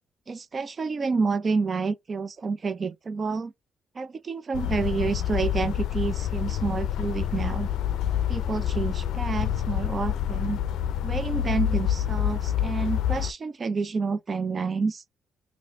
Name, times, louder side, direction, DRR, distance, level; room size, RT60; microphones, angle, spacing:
voice 1, 0.3-3.5 4.0-7.7 8.3-10.6 11.0-15.0, right 4 dB, 40° right, 0.4 m, -29 dB
sound 1, 4.5-13.3, left 10 dB, 80° left, 0.4 m, -27 dB
3.1 x 2.6 x 3.4 m
cardioid pair, 75°, 0 cm